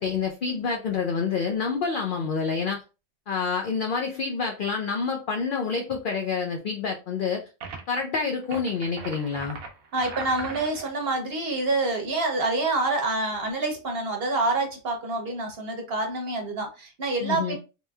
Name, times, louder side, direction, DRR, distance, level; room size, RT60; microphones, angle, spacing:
voice 1, 0.0-2.8 3.3-7.4 7.9-9.6 17.2-17.6, left 5 dB, 75° left, 2 dB, 0.4 m, -28 dB
sound 1, 7.6-8.0 8.4-11.0, right 4 dB, 90° right, 1.1 m, -39 dB
voice 2, 9.9-17.6, right 2 dB, 55° right, 3 dB, 0.9 m, -27 dB
3.1 x 3.0 x 2.2 m, 0.31 s
omnidirectional pair, 1.4 m